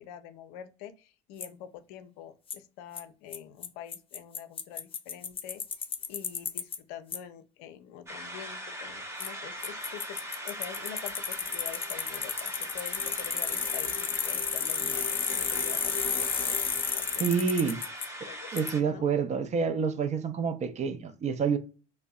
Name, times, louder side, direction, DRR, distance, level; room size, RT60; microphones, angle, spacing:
voice 1, 0.0-5.6 6.1-17.7 18.2-18.5 18.9-19.1, left 10 dB, 70° left, 0.5 m, -46 dB
Bicycle, 1.4-1.5 2.5-2.6 3.0-3.1 3.3-3.4 3.6-3.7 3.9-6.8 7.1-7.2 9.2-9.3 9.6-18.1 18.6-18.7, left 6 dB, 25° left, 0.5 m, -32 dB
sound 1, 8.1-18.8, equal, 15° right, 0.8 m, -40 dB
voice 2, 17.2-17.8 18.5-21.6, right 6 dB, 35° right, 0.5 m, -28 dB
2.6 x 2.1 x 2.3 m
hypercardioid pair, 75°, 20 cm